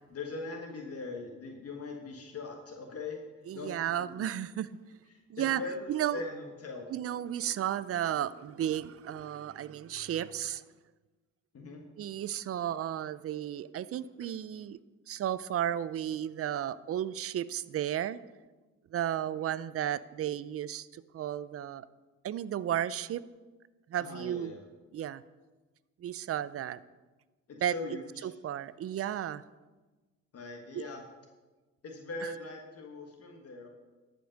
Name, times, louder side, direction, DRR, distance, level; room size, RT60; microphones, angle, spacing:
voice 1, 0.1-3.2 3.5-4.3 5.1-6.9 11.5-11.8 24.0-24.6 27.5-28.3 30.3-31.0 31.8-33.7, left 3 dB, 50° left, 1 dB, 1.4 m, -41 dB
voice 2, 3.5-4.7 5.3-5.6 5.9-6.2 6.9-10.6 12.0-14.8 15.1-18.2 18.9-21.9 22.2-23.2 23.9-24.5 24.9-25.2 26.0-26.8 27.6-27.7 28.2-29.4 30.7-30.8 32.2-32.3, right 11 dB, 50° right, 17 dB, 0.5 m, -33 dB
12.5 x 5.3 x 6.4 m, 1.2 s
cardioid pair, 90°, 30 cm